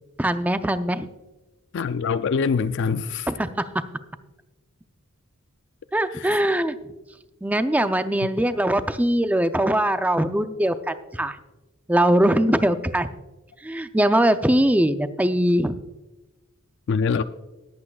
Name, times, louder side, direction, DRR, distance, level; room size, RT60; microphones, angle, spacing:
voice 1, 0.2-1.1 3.3-3.5 5.9-6.8 7.4-11.4 11.9-13.1 13.6-15.8, right 1 dB, 5° right, 0.5 m, -21 dB
voice 2, 1.7-3.3 6.1-6.4 16.9-17.2, left 5 dB, 55° left, 0.4 m, -24 dB
20.5 x 8.5 x 2.3 m
head